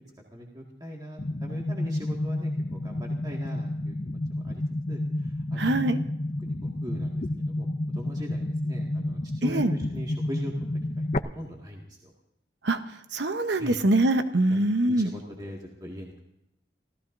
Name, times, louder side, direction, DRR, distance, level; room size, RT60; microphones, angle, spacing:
voice 1, 0.3-4.0 4.3-6.0 6.4-10.5 11.0-11.1 11.3-12.1 13.6-13.8 14.5-16.1, equal, 25° right, -2 dB, 2.0 m, -41 dB
sound 1, 1.2-11.2, left 1 dB, 40° left, 0.6 m, -30 dB
voice 2, 5.6-6.0 9.4-9.7 12.6-15.1, right 1 dB, 75° right, 9 dB, 1.0 m, -24 dB
28.5 x 15.0 x 2.7 m, 0.86 s
head